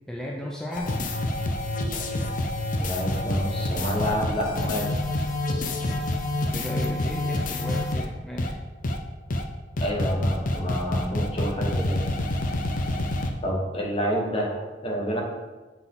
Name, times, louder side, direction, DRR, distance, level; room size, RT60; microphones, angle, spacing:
voice 1, 0.1-1.0 6.5-8.6, left 1 dB, 5° left, -3 dB, 0.5 m, -35 dB
sound 1, 0.7-8.1 8.4-8.5 8.8-9.0 9.3-9.4 9.8-13.3, left 1 dB, 50° left, 0.6 m, -27 dB
voice 2, 2.7-4.9 9.8-12.0 13.4-15.2, equal, 30° left, -1 dB, 1.1 m, -28 dB
sound 2, 3.1-5.6, right 2 dB, 75° right, 0.7 m, -42 dB
7.9 x 3.9 x 3.7 m, 1.3 s
head